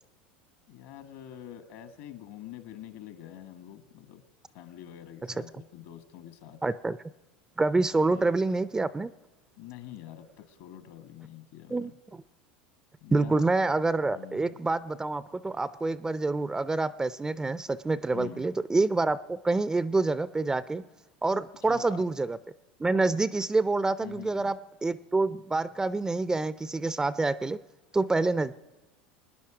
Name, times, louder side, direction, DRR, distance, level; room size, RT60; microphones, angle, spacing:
voice 1, 0.7-4.2 4.5-6.6 8.1-8.3 9.6-11.9 13.0-13.4 14.1-14.6 18.1-18.5 21.7-22.1 24.0-24.5, left 11 dB, 65° left, 10 dB, 1.5 m, -45 dB
voice 2, 6.6-7.0 7.6-9.1 11.7-12.2 13.1-20.8 21.2-22.4 22.8-27.6 27.9-28.5, right 3 dB, 15° right, 16 dB, 0.4 m, -27 dB
24.0 x 10.0 x 4.9 m, 1.1 s
hypercardioid pair, 85°, 5 cm